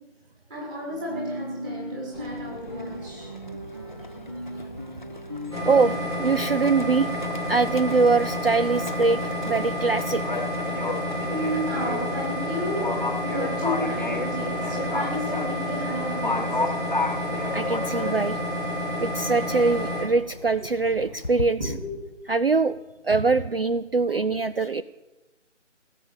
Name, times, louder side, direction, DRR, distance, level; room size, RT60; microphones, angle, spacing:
voice 1, 0.5-3.4 11.3-16.6 21.6-21.9, equal, 5° right, -4 dB, 1.6 m, -32 dB
Guitar, 0.9-6.0, equal, 20° right, 0.8 m, -37 dB
Livestock farm animals working animals, 2.1-21.5, left 2 dB, 40° left, 0.6 m, -35 dB
sound 1, 5.5-20.0, left 1 dB, 75° right, 7.2 m, -30 dB
voice 2, 5.7-7.1 7.5-10.2 17.5-18.4 19.0-21.6 22.3-22.8 23.0-24.8, right 4 dB, 50° right, 13 dB, 0.4 m, -23 dB
17.5 x 7.4 x 8.9 m, 1.1 s
figure-of-eight pair, 160°, 37 cm